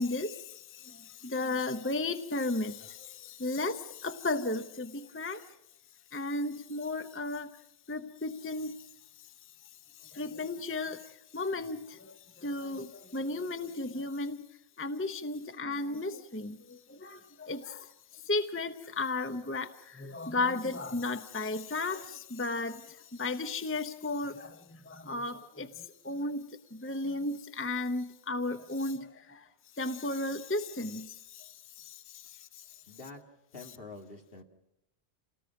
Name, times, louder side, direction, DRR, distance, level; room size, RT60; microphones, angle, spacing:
voice 1, 0.0-5.5 6.1-7.5 7.9-9.3 9.6-14.5 14.8-26.4 26.7-29.5 29.7-32.8, left 2 dB, 15° left, 0.8 m, -35 dB
voice 2, 32.9-33.2 33.5-34.4, left 3 dB, 60° left, 2.6 m, -46 dB
29.0 x 19.0 x 5.9 m
omnidirectional pair, 1.1 m